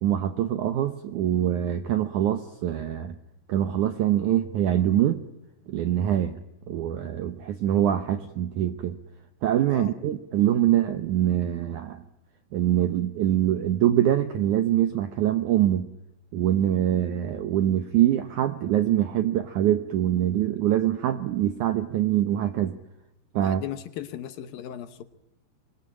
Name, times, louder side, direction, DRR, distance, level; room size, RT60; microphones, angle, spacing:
voice 1, 0.0-3.2 3.5-5.2 5.7-6.4 6.7-9.0 9.4-12.0 12.5-15.9 16.3-22.8 23.3-23.6, right 11 dB, 75° right, 9 dB, 1.8 m, -24 dB
voice 2, 23.4-25.0, left 11 dB, 70° left, 11 dB, 2.5 m, -37 dB
25.5 x 21.5 x 8.7 m, 0.92 s
omnidirectional pair, 4.8 m